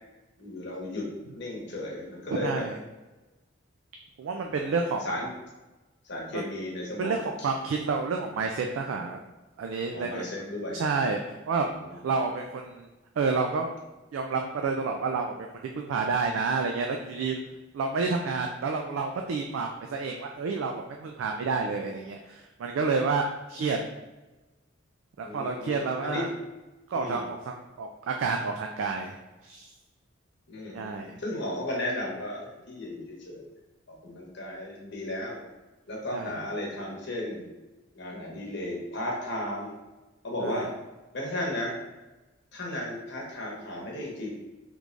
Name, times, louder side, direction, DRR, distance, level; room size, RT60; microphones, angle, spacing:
voice 1, 0.4-1.1 1.3-2.6 4.4-4.5 5.0-5.3 6.1-7.2 9.9-10.8 11.9-12.0 25.2-26.3 26.9-27.4 30.5-33.5 34.0-35.4 35.9-37.5 37.9-39.7 40.2-40.7 41.1-41.7 42.5-44.3, left 1 dB, 60° left, -3 dB, 1.0 m, -34 dB
voice 2, 2.4-2.8 4.2-5.1 6.3-6.4 7.0-9.2 9.6-10.2 10.7-11.7 12.0-12.9 13.2-13.7 14.1-17.4 17.7-23.8 25.2-26.3 26.9-29.2 29.4-29.7 30.7-31.2 36.1-36.3 40.4-40.6, right 4 dB, 75° right, 3 dB, 0.3 m, -29 dB
3.5 x 3.2 x 2.5 m, 1.1 s
head